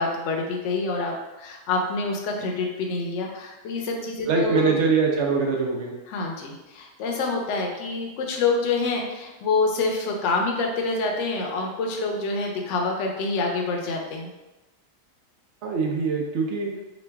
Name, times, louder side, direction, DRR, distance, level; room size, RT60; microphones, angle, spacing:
voice 1, 0.0-4.8 6.1-14.3, left 3 dB, 70° left, 1 dB, 0.9 m, -27 dB
voice 2, 4.3-5.9 15.6-16.7, right 4 dB, 65° right, 0 dB, 0.8 m, -23 dB
3.0 x 2.4 x 3.3 m, 1.0 s
omnidirectional pair, 1.4 m